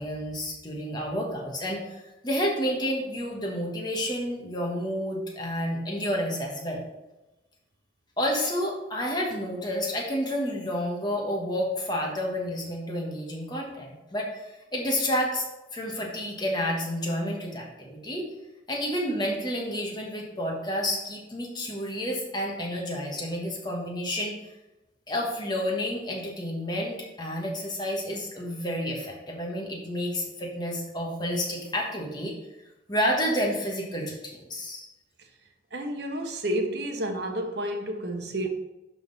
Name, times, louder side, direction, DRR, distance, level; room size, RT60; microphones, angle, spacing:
voice 1, 0.0-6.8 8.2-18.3 18.7-24.4 25.1-32.3 32.9-34.9, equal, 25° left, -1 dB, 1.4 m, -30 dB
voice 2, 35.7-38.5, right 1 dB, 60° right, 5 dB, 1.0 m, -30 dB
11.5 x 3.8 x 4.0 m, 1.0 s
head